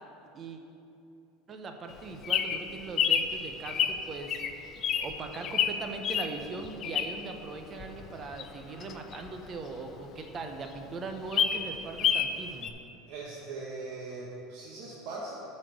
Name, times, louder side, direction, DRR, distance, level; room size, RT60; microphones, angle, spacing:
voice 1, 1.5-12.7, right 3 dB, 35° right, 5 dB, 0.8 m, -40 dB
Bird vocalization bird call bird song, 1.9-7.4 7.8-10.0 10.3-10.4 10.7-10.8 11.1-12.3 12.6-12.7, left 8 dB, 45° left, 0.5 m, -29 dB
voice 2, 13.1-15.5, right 3 dB, 65° right, -4 dB, 1.1 m, -40 dB
8.9 x 4.3 x 6.2 m, 2.7 s
supercardioid pair, 115°, 0 cm